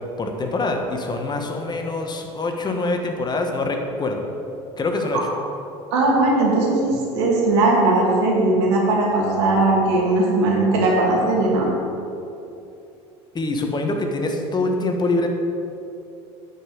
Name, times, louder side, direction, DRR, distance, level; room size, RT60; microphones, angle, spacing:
voice 1, 0.2-4.2 4.8-5.2 13.3-15.3, left 2 dB, 30° left, 3 dB, 1.6 m, -24 dB
voice 2, 5.9-11.7, right 2 dB, 85° right, -2 dB, 2.5 m, -19 dB
9.9 x 5.9 x 7.9 m, 2.8 s
hypercardioid pair, 80°, 14 cm